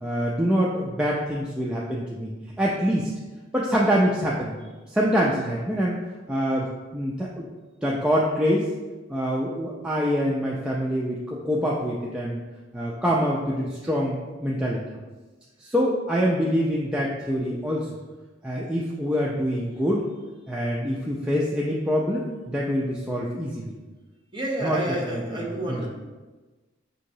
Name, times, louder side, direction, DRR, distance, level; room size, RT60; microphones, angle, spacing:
voice 1, 0.0-2.3 2.6-3.1 3.5-4.6 4.9-6.0 6.3-7.5 7.8-8.7 9.1-12.4 12.7-14.8 15.6-17.9 18.4-20.1 20.5-23.8 24.6-24.8 25.0-25.4 25.7-25.8, equal, 5° right, -4 dB, 0.3 m, -25 dB
voice 2, 24.3-25.9, right 1 dB, 25° right, -3 dB, 0.8 m, -29 dB
6.2 x 2.8 x 2.7 m, 1.2 s
head